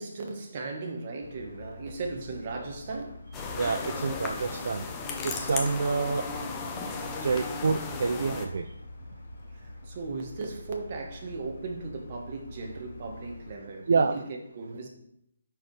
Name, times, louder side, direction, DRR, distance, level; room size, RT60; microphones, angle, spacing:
voice 1, 0.0-3.3 9.5-14.2 14.5-14.9, right 3 dB, 35° right, 1.2 m, -37 dB
sound 1, 1.2-13.6, left 2 dB, 55° left, 0.6 m, -46 dB
sound 2, 3.3-8.5, left 4 dB, 15° left, 0.7 m, -35 dB
voice 2, 3.6-4.8 5.2-6.2 7.2-8.6 13.9-14.1, right 4 dB, 60° right, 0.4 m, -27 dB
10.0 x 4.5 x 3.2 m
hypercardioid pair, 165°, 0 cm